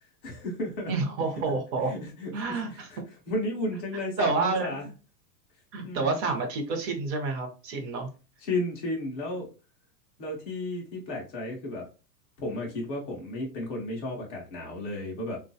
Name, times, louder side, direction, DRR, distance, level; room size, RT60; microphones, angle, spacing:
voice 1, 0.2-0.9 1.9-2.3 2.7-3.0 3.3-4.9 5.8-6.3 8.4-9.5 10.2-11.9 12.4-15.4, left 1 dB, 15° left, -2 dB, 0.3 m, -33 dB
voice 2, 0.9-1.9 2.3-2.9 4.2-4.8 5.7-8.1, right 3 dB, 30° right, 3 dB, 0.6 m, -29 dB
3.5 x 2.3 x 2.6 m, 0.33 s
supercardioid pair, 140°, 49 cm